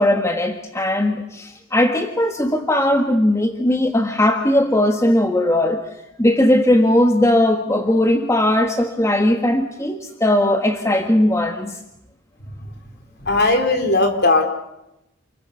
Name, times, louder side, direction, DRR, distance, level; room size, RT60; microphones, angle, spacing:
voice 1, 0.0-5.8 6.2-11.8, left 1 dB, 15° left, 6 dB, 1.4 m, -18 dB
voice 2, 13.2-14.5, left 2 dB, 50° left, 6 dB, 4.0 m, -17 dB
29.0 x 22.0 x 7.0 m, 0.85 s
head